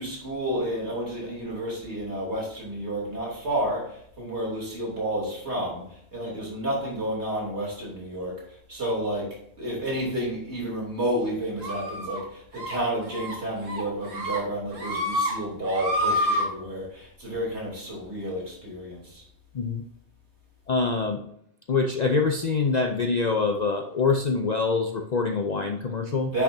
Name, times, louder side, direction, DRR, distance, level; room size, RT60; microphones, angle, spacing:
voice 1, 0.0-5.8 6.1-8.4 8.7-19.2 26.3-26.4, right 1 dB, 60° right, -3 dB, 3.2 m, -30 dB
sound 1, 11.6-12.2 12.5-12.7 13.1-13.3 13.7-14.4 14.7-15.3 15.6-16.4, equal, 85° right, 2.2 m, -28 dB
voice 2, 20.7-21.2 21.7-26.3, left 4 dB, 50° left, 5 dB, 0.5 m, -25 dB
10.0 x 5.9 x 2.7 m, 0.69 s
omnidirectional pair, 1.3 m